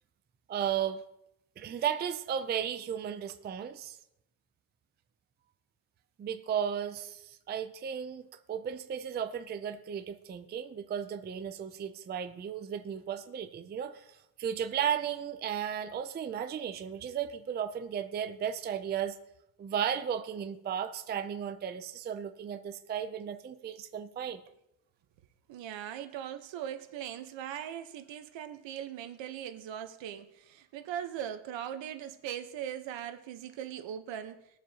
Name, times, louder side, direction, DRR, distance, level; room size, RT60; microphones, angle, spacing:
voice 1, 0.5-1.0 1.6-4.0 6.2-19.2 19.6-24.4, right 8 dB, 25° right, 8 dB, 0.4 m, -35 dB
voice 2, 25.5-34.4, right 10 dB, 75° right, 8 dB, 1.1 m, -40 dB
21.0 x 7.3 x 2.9 m, 0.85 s
cardioid pair, 170°, 45 cm